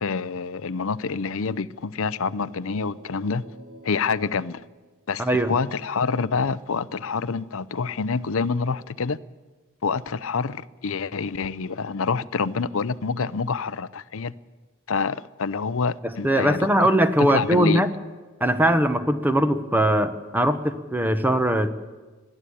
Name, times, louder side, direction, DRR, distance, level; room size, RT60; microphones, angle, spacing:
voice 1, 0.0-3.4 3.8-4.6 5.1-9.2 9.8-14.3 14.9-16.9 17.2-17.8, left 5 dB, 65° left, 0.6 m, -27 dB
sound 1, 1.8-5.6, equal, 80° right, 3.7 m, -49 dB
voice 2, 5.2-5.5 16.0-17.9 18.4-21.7, right 1 dB, 10° right, 1.1 m, -21 dB
21.5 x 14.5 x 8.6 m
head